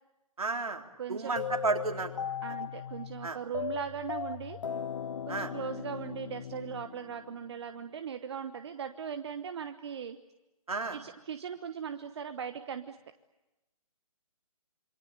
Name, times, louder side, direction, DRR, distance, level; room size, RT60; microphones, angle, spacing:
voice 1, 0.4-2.1 3.2-3.4 5.3-5.5 10.7-11.0, right 3 dB, 75° right, 4 dB, 3.6 m, -32 dB
voice 2, 1.0-1.3 2.4-4.6 5.3-10.2 10.9-13.0, right 7 dB, 45° right, 10 dB, 1.1 m, -39 dB
sound 1, 1.4-7.5, left 7 dB, 55° left, 1.1 m, -38 dB
27.0 x 24.0 x 8.8 m, 0.99 s
figure-of-eight pair, 140°, 19 cm